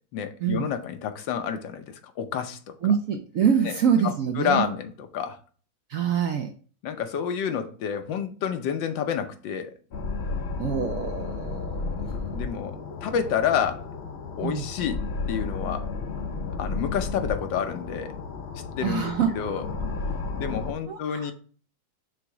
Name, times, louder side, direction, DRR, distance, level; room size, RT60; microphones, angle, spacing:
voice 1, 0.1-2.8 3.6-3.7 4.0-5.4 6.8-9.7 12.3-13.8 14.4-15.0 15.3-15.9 16.6-18.1 18.8-19.6 20.4-21.3, left 8 dB, 80° left, 1.5 m, -29 dB
voice 2, 2.8-4.7 5.9-6.5 10.6-12.3 14.4-14.7 18.8-19.3 20.9-21.3, right 7 dB, 65° right, 0.8 m, -25 dB
sound 1, 9.9-20.7, left 4 dB, 55° left, 0.7 m, -33 dB
5.0 x 3.6 x 5.7 m
omnidirectional pair, 2.0 m